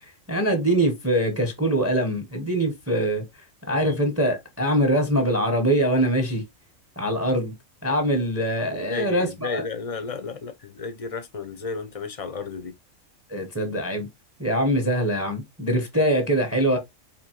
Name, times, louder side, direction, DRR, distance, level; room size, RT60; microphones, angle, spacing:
voice 1, 0.3-3.2 3.7-6.4 7.0-7.5 7.8-9.6 13.3-14.1 14.4-16.8, right 1 dB, 15° right, 0.7 m, -23 dB
voice 2, 8.7-12.7, left 4 dB, 45° left, 0.5 m, -33 dB
4.3 x 2.9 x 2.9 m
omnidirectional pair, 1.4 m